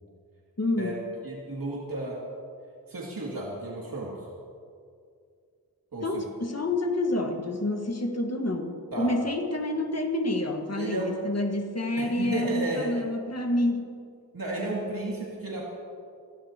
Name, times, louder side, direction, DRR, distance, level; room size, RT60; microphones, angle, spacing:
voice 1, 0.6-1.0 6.0-13.9, left 1 dB, 45° left, 3 dB, 1.6 m, -28 dB
voice 2, 1.2-2.2 2.9-4.2 5.9-6.2 8.9-9.1 10.8-11.1 12.0-12.9 14.3-15.6, right 2 dB, 65° right, -4 dB, 2.6 m, -33 dB
25.0 x 16.5 x 2.9 m, 2.3 s
wide cardioid pair, 80°, 37 cm